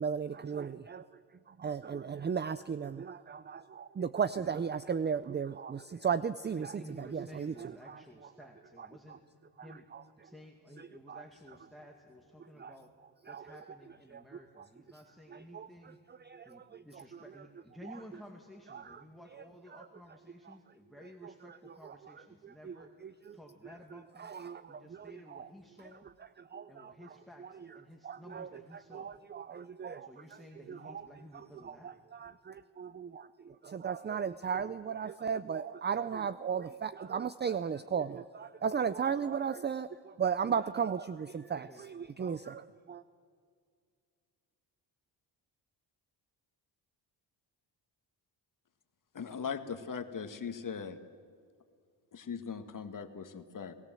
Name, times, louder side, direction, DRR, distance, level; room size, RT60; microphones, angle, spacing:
voice 1, 0.0-8.5 8.8-9.2 9.6-10.3 10.8-11.6 12.4-15.0 15.3-17.5 17.8-18.2 18.7-20.6 21.0-43.0, right 7 dB, 25° right, 14 dB, 0.5 m, -37 dB
voice 2, 6.7-9.2 9.6-9.8 10.2-12.9 13.3-16.0 16.5-22.9 23.3-24.3 24.7-26.1 26.7-27.4 27.7-29.1 30.1-31.9 41.7-41.8, left 1 dB, ahead, 1 dB, 2.2 m, -54 dB
voice 3, 49.1-51.0 52.1-53.7, left 6 dB, 45° left, 8 dB, 1.8 m, -39 dB
29.5 x 18.0 x 7.7 m, 2.2 s
cardioid pair, 100°, 44 cm